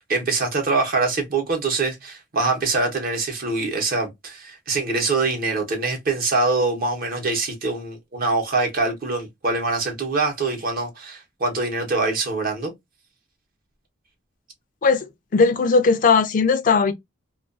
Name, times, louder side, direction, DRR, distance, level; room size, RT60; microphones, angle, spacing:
voice 1, 0.1-12.7, right 3 dB, 50° right, 0.8 m, -24 dB
voice 2, 14.8-16.9, left 4 dB, 45° left, 0.4 m, -18 dB
2.4 x 2.3 x 2.3 m
head